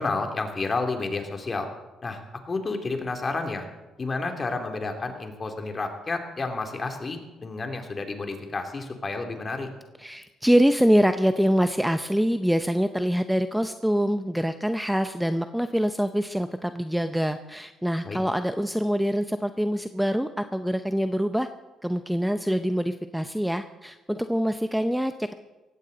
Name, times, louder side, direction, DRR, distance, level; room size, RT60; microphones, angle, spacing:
voice 1, 0.0-1.7 2.0-3.7 4.0-9.7 18.0-18.2, left 3 dB, 35° left, 4 dB, 2.7 m, -30 dB
voice 2, 10.0-21.5 21.8-25.3, equal, 5° right, 9 dB, 0.7 m, -25 dB
18.0 x 15.0 x 4.0 m, 1.1 s
cardioid pair, 80°, 0 cm